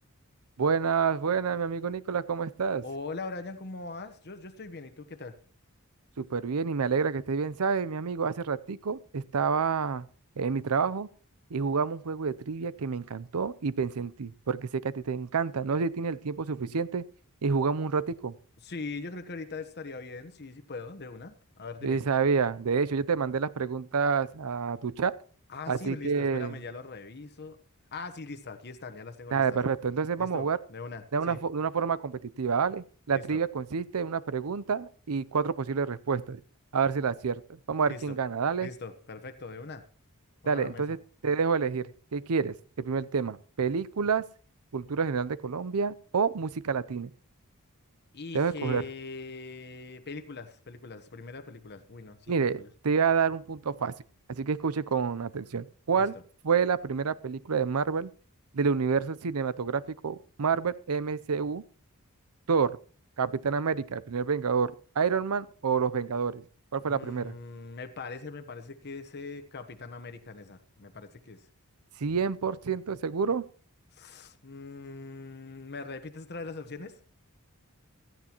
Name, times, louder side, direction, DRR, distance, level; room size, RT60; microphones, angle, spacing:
voice 1, 0.6-2.8 6.2-10.0 10.4-11.1 11.5-17.0 17.4-18.3 21.8-25.1 25.7-26.5 29.3-30.6 31.1-36.4 36.7-38.7 40.5-41.0 41.2-44.2 44.7-47.1 48.3-48.8 52.3-53.9 54.4-56.1 56.4-58.1 58.5-61.6 62.5-62.8 63.2-66.4 66.7-67.3 72.0-73.4, right 5 dB, 80° right, 0.6 m, -28 dB
voice 2, 2.8-5.3 18.6-22.0 25.5-27.6 27.9-29.4 30.2-31.4 33.1-33.4 37.8-38.2 38.6-39.8 40.4-40.8 48.1-52.7 55.9-56.1 66.8-71.4 73.9-76.9, left 3 dB, 50° left, 1.1 m, -41 dB
17.0 x 14.0 x 3.0 m
head